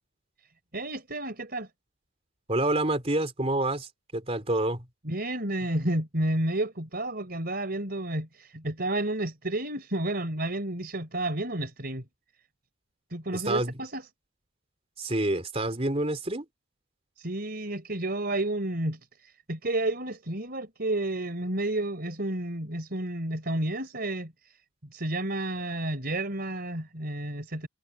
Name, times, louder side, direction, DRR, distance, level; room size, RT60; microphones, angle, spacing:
voice 1, 0.7-1.7 5.0-12.1 13.1-14.1 17.2-24.6 24.9-27.7, right 1 dB, 45° right, 4.3 m, -31 dB
voice 2, 2.5-4.9 13.3-13.7 15.0-16.4, right 1 dB, 30° right, 3.7 m, -28 dB
head